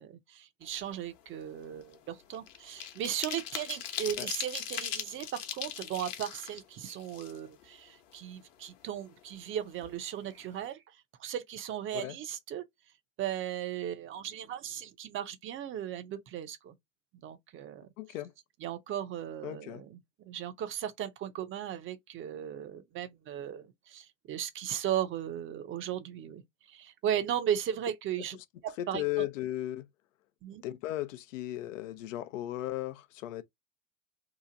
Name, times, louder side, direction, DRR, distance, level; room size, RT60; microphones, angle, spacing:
voice 1, 0.0-12.6 13.2-16.7 17.2-17.9 18.6-20.0 20.3-28.4 28.6-29.3 30.4-30.6, right 10 dB, 30° right, 0.6 m, -36 dB
sound 1, 0.7-1.0 1.3-7.7 8.1-8.2 8.5-9.5 9.8-10.0 10.3-10.6, left 10 dB, 55° left, 1.0 m, -40 dB
voice 2, 18.0-18.3 19.4-19.8 28.8-29.9 30.6-33.4, left 15 dB, 75° left, 0.6 m, -36 dB
2.9 x 2.4 x 3.7 m
hypercardioid pair, 100°, 39 cm